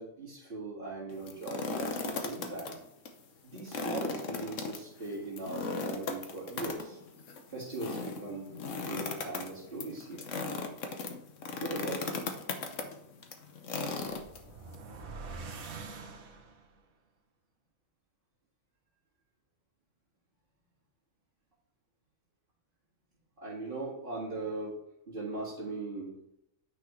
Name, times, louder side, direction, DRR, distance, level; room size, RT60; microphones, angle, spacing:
voice 1, 0.0-2.8 3.4-7.0 7.5-8.5 8.8-10.3 11.6-12.2 23.4-24.8 25.1-26.1, right 2 dB, 40° right, -8 dB, 2.1 m, -39 dB
sound 1, 1.1-2.7 3.0-3.1 3.6-14.8, left 4 dB, 65° left, 1.3 m, -37 dB
sound 2, 14.0-16.8, right 4 dB, 90° right, 1.5 m, -45 dB
9.4 x 6.1 x 3.1 m, 0.80 s
omnidirectional pair, 1.4 m